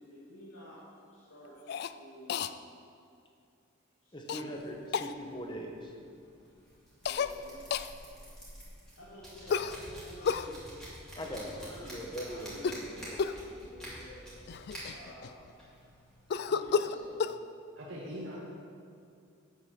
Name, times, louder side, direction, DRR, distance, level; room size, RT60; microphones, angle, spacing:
voice 1, 0.0-2.5 4.0-4.7 6.9-7.6 9.0-10.6 11.1-14.2 14.8-15.5 16.5-17.3, equal, 70° left, -9 dB, 2.2 m, -50 dB
Cough, 1.7-1.9 2.3-2.5 4.3-4.4 4.9-5.1 7.0-7.3 7.7-7.9 9.5-10.5 12.5-12.9 13.2-13.5 14.1-14.2 14.5-15.5 16.3-17.4, left 6 dB, 50° left, 0.3 m, -31 dB
voice 2, 4.1-5.9 11.1-11.5 11.8-12.6, equal, 20° left, 1 dB, 1.1 m, -40 dB
sound 1, 4.5-17.1, equal, 5° left, 2.9 m, -49 dB
voice 3, 17.8-18.4, equal, 80° right, -6 dB, 1.8 m, -41 dB
9.5 x 8.3 x 6.4 m, 2.4 s
head